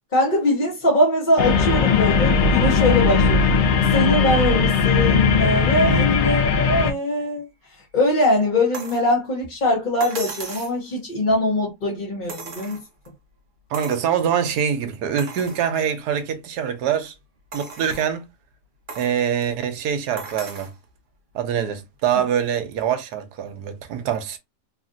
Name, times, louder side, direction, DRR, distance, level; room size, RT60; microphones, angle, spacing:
voice 1, 0.1-3.5 3.9-7.5 7.9-12.8, left 1 dB, 35° left, 0.8 m, -22 dB
sound 1, 1.4-6.9, left 5 dB, 85° left, 0.6 m, -18 dB
voice 2, 5.9-6.2 13.7-17.1 17.5-18.2 19.0-20.7 21.3-24.4, right 8 dB, 75° right, 1.1 m, -24 dB
sound 2, 8.7-9.1 10.0-10.8 12.3-13.1 13.7-14.1 14.6-14.7 15.2-15.7 16.3-16.4 17.5-18.1 18.9-19.2 20.2-20.8 22.0-22.1, right 4 dB, 50° right, 0.6 m, -36 dB
3.2 x 2.4 x 2.5 m
omnidirectional pair, 1.8 m